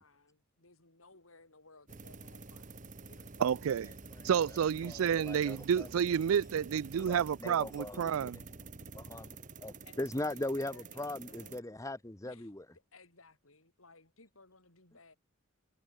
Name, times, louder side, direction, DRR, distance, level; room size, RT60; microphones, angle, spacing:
voice 1, 0.0-3.5 9.2-9.3 9.8-11.7 12.2-12.5 12.9-15.2, left 3 dB, 85° left, 7.0 m, -60 dB
sound 1, 1.9-11.6, right 4 dB, 40° right, 1.3 m, -49 dB
voice 2, 3.4-3.9 4.2-8.4, right 8 dB, 85° right, 0.4 m, -30 dB
voice 3, 4.8-5.9 7.0-8.3 8.9-12.6, left 1 dB, 15° left, 0.9 m, -40 dB
head